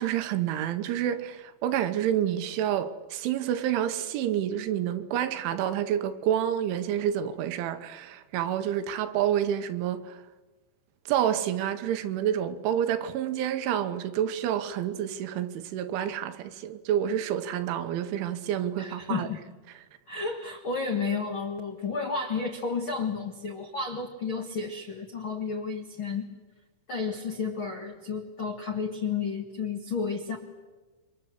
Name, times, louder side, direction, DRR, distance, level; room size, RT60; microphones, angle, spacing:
voice 1, 0.0-10.2 11.1-19.3, right 10 dB, 80° right, 3.4 m, -28 dB
voice 2, 18.8-19.4 20.1-26.3 26.9-30.4, left 5 dB, 65° left, 1.2 m, -32 dB
28.5 x 24.0 x 8.1 m
omnidirectional pair, 5.5 m